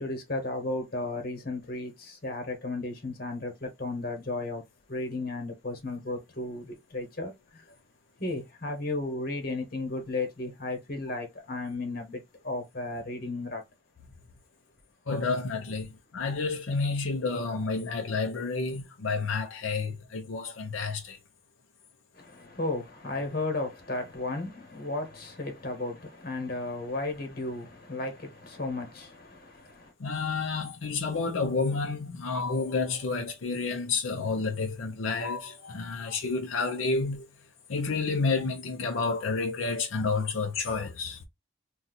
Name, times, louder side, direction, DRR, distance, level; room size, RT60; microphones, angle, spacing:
voice 1, 0.0-4.6 4.9-7.6 8.2-13.6 22.1-29.9, left 2 dB, 50° left, 1.2 m, -34 dB
voice 2, 15.1-21.2 30.0-37.3 37.7-41.2, left 4 dB, 85° left, 0.6 m, -30 dB
2.7 x 2.3 x 4.0 m
head